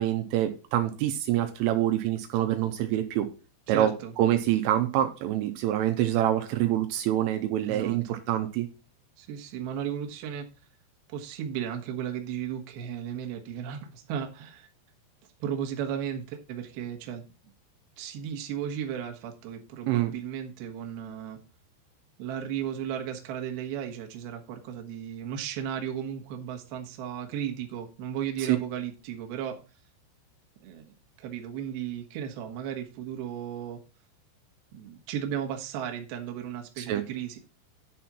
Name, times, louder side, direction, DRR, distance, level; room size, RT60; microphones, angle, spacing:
voice 1, 0.0-3.3 3.7-3.9 4.2-8.7 19.9-20.1 28.4-28.6 36.8-37.0, right 12 dB, 85° right, 3.2 m, -26 dB
voice 2, 3.7-4.1 7.6-8.0 9.2-10.5 11.1-14.7 15.4-17.2 18.0-21.4 22.2-29.6 30.6-33.8 34.7-37.4, right 9 dB, 65° right, 2.6 m, -35 dB
10.0 x 4.3 x 6.0 m
omnidirectional pair, 6.0 m